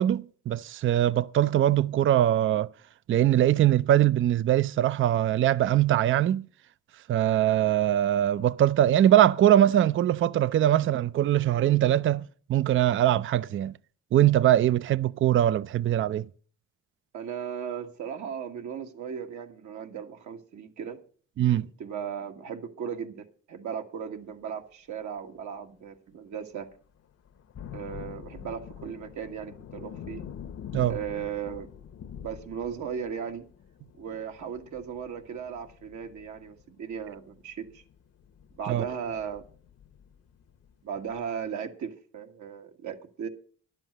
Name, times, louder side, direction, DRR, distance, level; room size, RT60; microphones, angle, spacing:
voice 1, 0.0-2.7 3.1-6.5 7.1-13.7 14.1-16.3 21.4-21.7 30.7-31.0 38.7-38.8, right 12 dB, 45° right, 0.4 m, -22 dB
voice 2, 17.1-21.0 21.5-26.7 27.7-30.2 30.9-31.7 32.2-33.4 34.0-37.8 38.6-39.4 40.8-43.3, right 7 dB, 75° right, 1.6 m, -36 dB
sound 1, 26.6-26.7 27.2-40.7 41.1-41.2, left 8 dB, 55° left, 0.9 m, -45 dB
11.0 x 7.5 x 6.5 m
cardioid pair, 90°, 30 cm